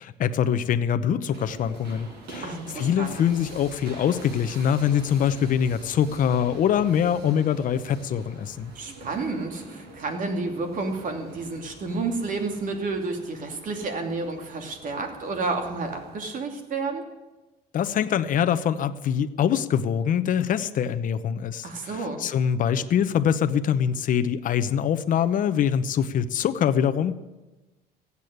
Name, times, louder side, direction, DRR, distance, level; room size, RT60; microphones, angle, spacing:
voice 1, 0.0-8.7 17.7-27.1, left 8 dB, 50° left, 11 dB, 0.8 m, -24 dB
sound 1, 1.3-16.3, right 2 dB, 75° right, 5.3 m, -45 dB
voice 2, 2.4-3.2 8.7-17.0 21.6-22.2, right 3 dB, 50° right, 4 dB, 2.8 m, -30 dB
15.0 x 8.4 x 9.3 m, 1.1 s
cardioid pair, 110°, 17 cm